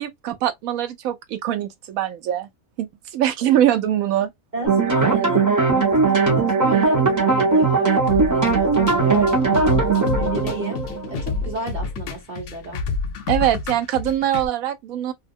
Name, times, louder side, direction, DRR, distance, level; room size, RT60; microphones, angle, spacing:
voice 1, 0.0-2.5 2.8-4.3 13.3-15.1, right 11 dB, 75° right, 1.0 m, -22 dB
voice 2, 4.5-5.5 5.7-10.8 11.1-12.8, right 3 dB, 35° right, 1.0 m, -32 dB
sound 1, 4.6-11.6, right 4 dB, 15° right, 0.7 m, -19 dB
sound 2, 8.1-14.5, left 4 dB, 65° left, 0.8 m, -28 dB
2.7 x 2.2 x 2.5 m
omnidirectional pair, 1.5 m